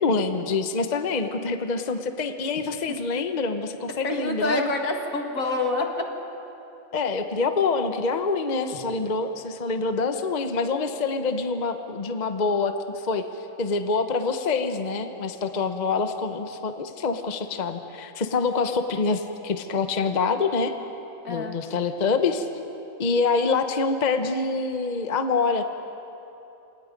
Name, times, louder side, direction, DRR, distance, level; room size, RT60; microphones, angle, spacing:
voice 1, 0.0-4.7 6.9-20.7 21.3-22.5 23.0-25.6, left 4 dB, 35° left, 7 dB, 1.0 m, -26 dB
voice 2, 4.0-5.9 21.2-21.6, left 2 dB, 75° left, 3 dB, 2.5 m, -26 dB
28.0 x 27.0 x 5.3 m, 3.0 s
omnidirectional pair, 1.4 m